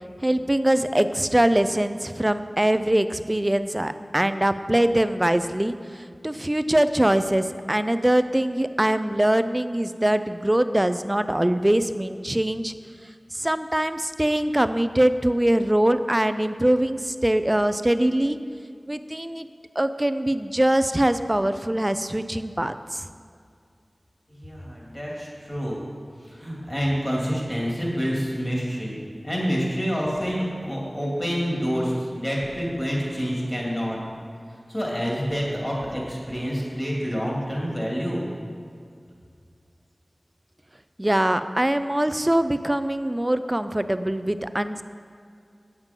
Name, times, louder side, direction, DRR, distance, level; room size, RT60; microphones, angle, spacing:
voice 1, 0.2-12.7 13.3-18.4 18.9-19.5 19.8-23.0 41.0-44.8, right 1 dB, 20° right, 11 dB, 0.4 m, -23 dB
voice 2, 24.3-25.8 26.2-34.0 34.7-38.2, equal, 25° left, -4 dB, 2.6 m, -27 dB
8.8 x 7.3 x 5.2 m, 2.2 s
wide cardioid pair, 65°, 0 cm